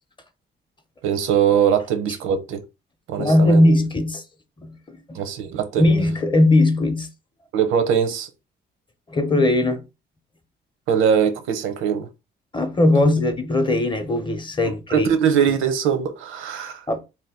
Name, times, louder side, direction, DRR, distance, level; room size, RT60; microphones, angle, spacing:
voice 1, 1.0-2.6 3.1-3.7 5.1-5.9 7.5-8.3 10.9-12.1 14.9-16.8, right 8 dB, 85° right, 0.6 m, -21 dB
voice 2, 3.2-4.2 4.6-5.0 5.8-7.1 9.1-9.8 12.5-15.1 16.9-17.0, left 1 dB, 25° left, 0.7 m, -19 dB
2.7 x 2.2 x 3.5 m
cardioid pair, 90°, 20 cm